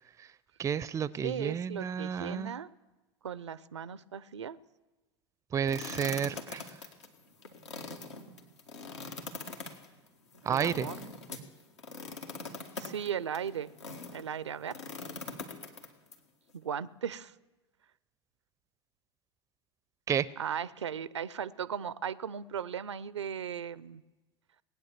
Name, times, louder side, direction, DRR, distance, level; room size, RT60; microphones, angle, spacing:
voice 1, 0.6-2.5 5.5-6.7 10.4-10.9 20.1-20.3, right 8 dB, 20° right, 21 dB, 0.5 m, -31 dB
voice 2, 1.2-2.7 3.2-4.6 10.5-11.0 12.8-13.7 14.1-14.8 16.5-17.3 20.4-24.0, right 8 dB, 80° right, 19 dB, 0.5 m, -37 dB
sound 1, 5.7-14.2 14.7-16.1, left 3 dB, 80° left, 1.9 m, -42 dB
19.0 x 9.3 x 7.3 m, 1.2 s
figure-of-eight pair, 80°, 15 cm